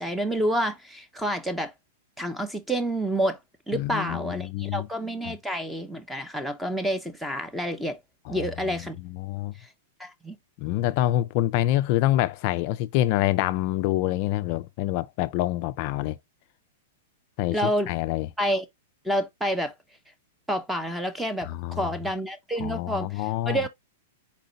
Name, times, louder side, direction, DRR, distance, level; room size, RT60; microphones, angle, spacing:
voice 1, 0.0-1.7 2.2-3.4 3.7-8.0 8.3-9.0 9.6-9.7 10.0-10.4 17.5-17.9 18.4-18.6 19.0-19.7 20.5-23.7, equal, 5° right, 0.7 m, -28 dB
voice 2, 3.7-4.9 5.3-5.4 8.3-8.8 9.0-9.5 10.6-16.2 17.4-18.3 21.4-21.9 22.6-23.6, left 15 dB, 45° left, 0.3 m, -26 dB
4.3 x 2.6 x 3.9 m
hypercardioid pair, 145°, 0 cm